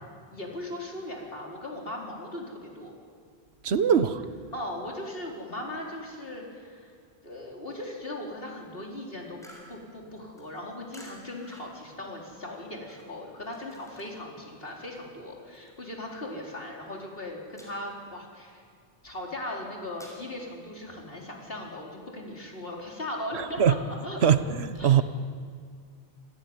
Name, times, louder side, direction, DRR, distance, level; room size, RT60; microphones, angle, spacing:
voice 1, 0.3-2.9 4.5-6.9 7.2-9.4 9.7-18.6 19.0-23.8 24.0-24.3 24.8-25.0, left 1 dB, 60° left, -1 dB, 4.5 m, -38 dB
voice 2, 3.6-4.2 23.3-23.8 24.2-25.0, right 8 dB, 90° right, 12 dB, 1.2 m, -22 dB
sound 1, 9.4-14.3 14.6-16.5 16.8-17.1 17.5-18.1 18.5-20.2, equal, 5° left, 5.8 m, -52 dB
27.5 x 15.5 x 9.7 m, 2.1 s
omnidirectional pair, 1.1 m